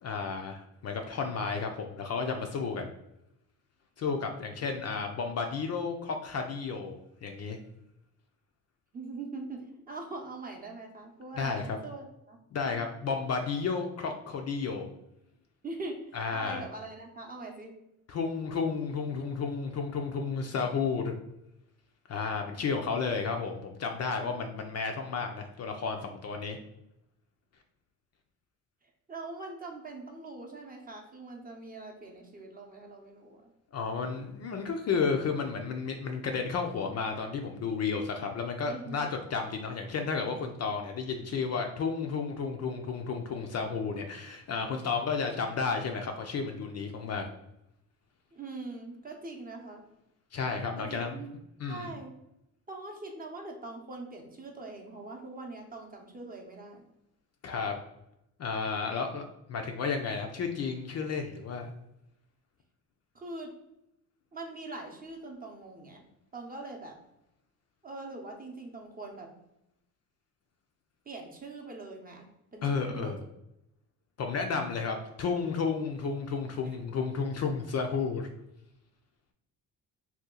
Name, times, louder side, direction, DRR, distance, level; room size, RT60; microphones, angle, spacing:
voice 1, 0.0-2.9 4.0-7.6 11.4-11.8 12.5-14.9 16.1-16.6 18.1-21.1 22.1-26.6 33.7-47.2 50.3-51.2 51.6-51.9 57.4-57.8 58.4-59.2 59.5-61.7 72.6-73.2 74.2-78.3, left 5 dB, 45° left, 4 dB, 0.4 m, -32 dB
voice 2, 8.9-12.4 15.6-17.7 24.3-24.4 29.1-33.5 38.7-39.0 48.3-49.8 50.8-51.3 51.7-52.1 52.7-56.8 63.1-63.5 64.3-66.0 66.3-66.9 67.8-69.3 71.1-72.3 72.5-73.1, right 2 dB, 25° right, 1 dB, 0.7 m, -42 dB
2.8 x 2.3 x 3.6 m, 0.83 s
cardioid pair, 90°, 38 cm